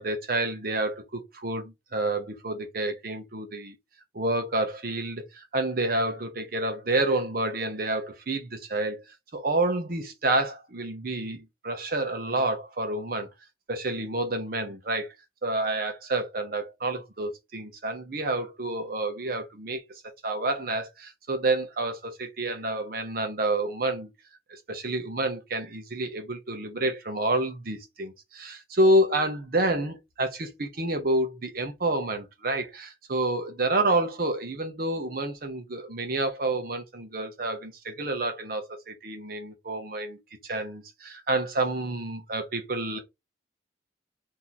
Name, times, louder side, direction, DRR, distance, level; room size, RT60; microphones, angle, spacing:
voice 1, 0.0-3.8 4.1-9.0 9.3-13.3 13.7-15.1 15.4-24.1 24.5-43.0, right 2 dB, 50° right, 0.8 m, -29 dB
3.0 x 2.7 x 3.8 m
head